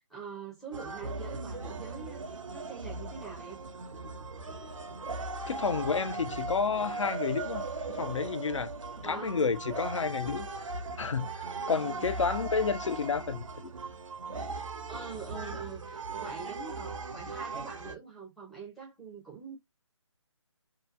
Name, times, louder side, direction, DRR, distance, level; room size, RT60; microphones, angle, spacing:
voice 1, 0.1-2.2 2.5-3.6 9.0-9.5 11.7-12.1 12.8-13.1 14.9-19.6, right 5 dB, ahead, 0.5 m, -44 dB
sound 1, 0.7-17.9, right 3 dB, 80° right, 0.7 m, -38 dB
voice 2, 5.5-8.7 9.0-10.5 11.0-13.7, left 5 dB, 70° left, 0.5 m, -31 dB
2.9 x 2.2 x 2.3 m
figure-of-eight pair, 160°, 16 cm